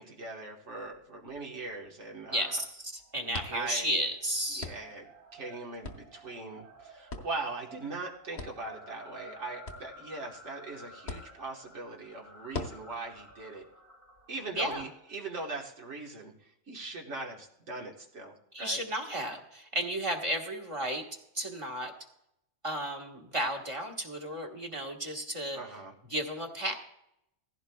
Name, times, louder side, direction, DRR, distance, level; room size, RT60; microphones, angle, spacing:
voice 1, 0.0-2.6 3.5-4.0 4.5-13.7 14.3-18.8 25.5-25.9, right 3 dB, 70° right, 0 dB, 1.7 m, -40 dB
sound 1, 0.7-14.8, left 3 dB, 60° left, 1.3 m, -47 dB
voice 2, 2.3-4.7 14.5-14.9 18.5-21.0 21.3-21.9 22.6-25.6 26.1-26.8, right 1 dB, 25° right, 1 dB, 1.4 m, -33 dB
sound 2, 3.0-15.4, right 1 dB, 55° right, 2.2 m, -53 dB
17.0 x 15.5 x 2.3 m, 0.81 s
omnidirectional pair, 1.3 m